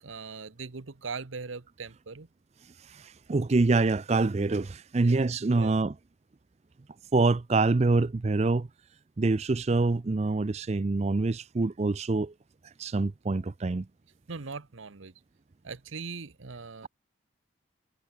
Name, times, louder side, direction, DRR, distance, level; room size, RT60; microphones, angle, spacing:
voice 1, 0.0-2.3 5.0-5.2 5.5-5.7 14.3-15.1 15.6-16.9, right 4 dB, 75° right, 1.0 m, -40 dB
voice 2, 2.8-5.9 7.1-8.7 9.2-12.3 12.8-13.9, right 3 dB, 35° right, 0.4 m, -25 dB
head